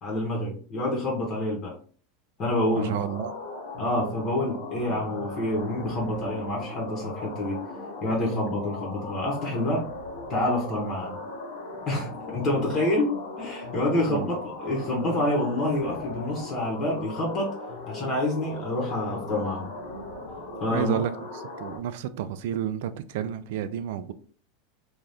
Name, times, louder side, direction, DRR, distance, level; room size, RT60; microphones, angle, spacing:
voice 1, 0.0-1.7 2.4-3.0 3.8-7.6 8.0-9.8 10.3-11.2 11.9-17.5 17.9-19.7 20.6-21.0, left 1 dB, 30° left, 0.8 m, -27 dB
sound 1, 2.7-21.8, left 2 dB, 75° left, 1.0 m, -38 dB
voice 2, 2.7-3.3 14.1-14.3 20.7-21.1 21.6-24.1, right 9 dB, 70° right, 0.3 m, -30 dB
2.6 x 2.3 x 3.3 m
supercardioid pair, 150°, 0 cm